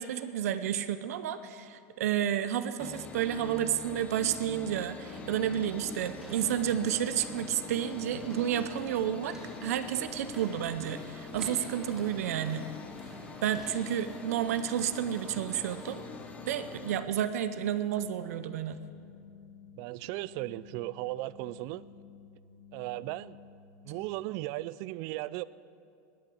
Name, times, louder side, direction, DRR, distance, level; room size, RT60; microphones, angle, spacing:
voice 1, 0.0-12.7 13.4-16.0 16.5-18.8, right 10 dB, 80° right, 0.6 m, -31 dB
sound 1, 2.8-17.0, left 4 dB, 15° left, 0.7 m, -45 dB
sound 2, 4.9-16.8, right 1 dB, 5° right, 2.6 m, -51 dB
sound 3, 5.1-24.0, left 6 dB, 60° left, 1.4 m, -53 dB
voice 2, 19.8-21.9 22.7-23.4 23.8-25.4, right 18 dB, 45° right, 0.3 m, -36 dB
19.5 x 6.8 x 7.9 m
supercardioid pair, 160°, 8 cm